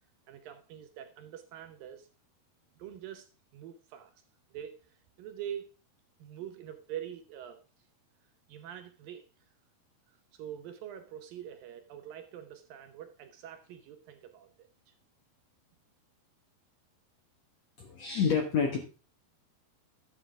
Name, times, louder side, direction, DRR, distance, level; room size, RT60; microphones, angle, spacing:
voice 1, 0.3-2.1 2.8-4.1 4.5-5.7 6.2-7.6 8.5-9.3 10.1-14.9, right 10 dB, 75° right, 2.3 m, -45 dB
voice 2, 17.8-18.8, left 6 dB, 60° left, 1.8 m, -28 dB
11.5 x 7.4 x 3.5 m
omnidirectional pair, 4.6 m